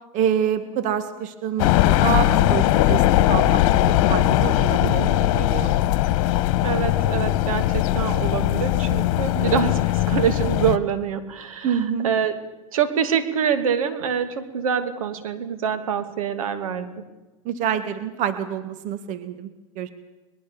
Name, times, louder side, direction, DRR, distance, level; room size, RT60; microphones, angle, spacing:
voice 1, 0.1-5.1 5.3-5.7 11.6-12.1 17.4-19.9, right 8 dB, 45° right, 11 dB, 1.8 m, -27 dB
sound 1, 1.6-10.8, left 14 dB, 60° left, 1.5 m, -20 dB
voice 2, 4.8-5.2 6.6-9.8 10.1-11.7 12.0-12.4 12.7-17.0, right 8 dB, 85° right, 9 dB, 2.8 m, -25 dB
22.5 x 21.0 x 7.1 m, 1.1 s
hypercardioid pair, 110°, 17 cm